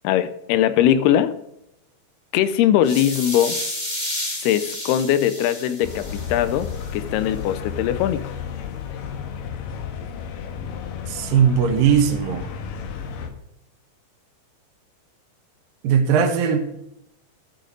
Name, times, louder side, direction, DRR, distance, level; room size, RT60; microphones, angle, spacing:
voice 1, 0.0-1.3 2.3-3.6 4.4-8.3, left 10 dB, 85° left, 14 dB, 2.6 m, -20 dB
sound 1, 2.8-6.9, left 1 dB, 20° left, 1.1 m, -31 dB
sound 2, 5.8-13.3, left 7 dB, 70° left, 2.5 m, -32 dB
voice 2, 11.1-12.5 15.8-16.8, right 7 dB, 65° right, 4 dB, 2.8 m, -19 dB
11.5 x 7.8 x 5.2 m, 0.82 s
omnidirectional pair, 4.7 m